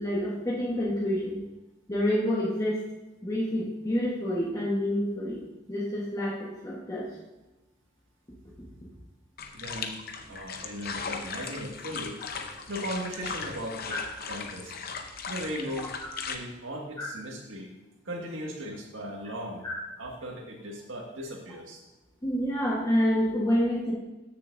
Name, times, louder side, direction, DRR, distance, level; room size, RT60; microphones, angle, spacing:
voice 1, 0.0-1.4 1.9-2.8 3.2-5.4 5.7-7.1 13.9-14.0 16.0-16.1 17.0-17.1 19.6-19.8 22.2-23.9, equal, 15° left, -5 dB, 1.3 m, -28 dB
sound 1, 9.4-16.3, left 5 dB, 50° left, 0.7 m, -38 dB
voice 2, 9.5-9.9 10.3-12.2 12.5-14.0 14.3-14.9 15.3-15.9 16.3-17.7 18.1-19.7 20.0-21.8, equal, 80° right, 0 dB, 1.8 m, -37 dB
13.0 x 6.8 x 2.6 m, 1.1 s
head